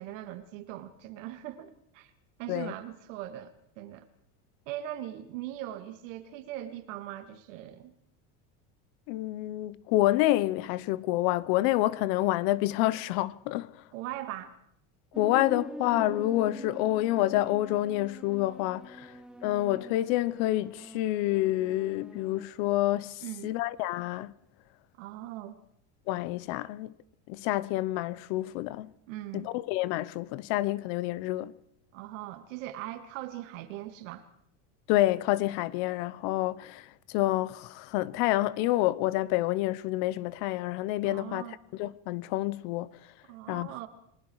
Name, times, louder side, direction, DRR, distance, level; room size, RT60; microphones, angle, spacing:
voice 1, 0.0-2.1 2.4-4.1 4.7-7.9 13.9-14.6 23.2-23.5 25.0-25.6 29.1-29.5 31.9-34.2 41.0-41.6 43.3-43.9, right 13 dB, 80° right, 2.6 m, -40 dB
voice 2, 9.1-13.7 15.2-19.1 19.4-24.3 26.1-26.9 27.3-28.9 29.3-31.5 34.9-36.8 37.1-41.4 41.8-42.9 43.5-43.7, left 16 dB, 65° left, 1.0 m, -28 dB
sound 1, 15.1-22.5, right 1 dB, ahead, 0.9 m, -44 dB
29.5 x 20.0 x 4.9 m
supercardioid pair, 145°, 38 cm